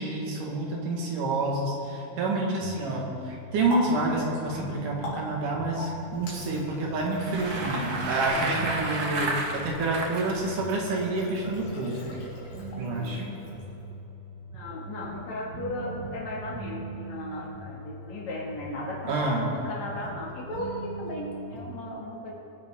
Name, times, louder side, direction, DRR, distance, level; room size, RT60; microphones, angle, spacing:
voice 1, 0.0-12.1 12.8-13.3 19.1-19.5, right 2 dB, 85° right, -1 dB, 3.5 m, -28 dB
sound 1, 2.6-21.7, right 2 dB, 65° right, 2.5 m, -41 dB
Water tap faucet, 3.1-13.9, left 2 dB, 90° left, 4.2 m, -42 dB
Bicycle, 7.0-10.3, right 2 dB, 50° right, 1.2 m, -31 dB
voice 2, 8.3-8.7 12.7-13.4 14.5-22.3, left 1 dB, 60° left, -3 dB, 3.4 m, -36 dB
22.0 x 9.9 x 3.8 m, 2.9 s
omnidirectional pair, 3.6 m